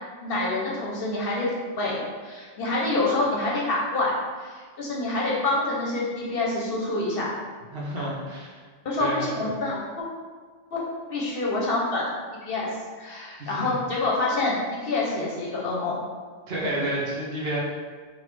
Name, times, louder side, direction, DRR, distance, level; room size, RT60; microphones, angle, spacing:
voice 1, 0.2-1.5 1.8-4.1 4.4-7.3 8.8-10.0 10.7-10.8 11.1-12.1 12.4-16.0, left 2 dB, 60° left, -4 dB, 0.7 m, -27 dB
voice 2, 7.7-8.6 9.0-9.4 13.4-13.7 16.5-17.6, right 1 dB, 65° right, -4 dB, 0.9 m, -30 dB
3.3 x 2.1 x 3.1 m, 1.5 s
omnidirectional pair, 1.2 m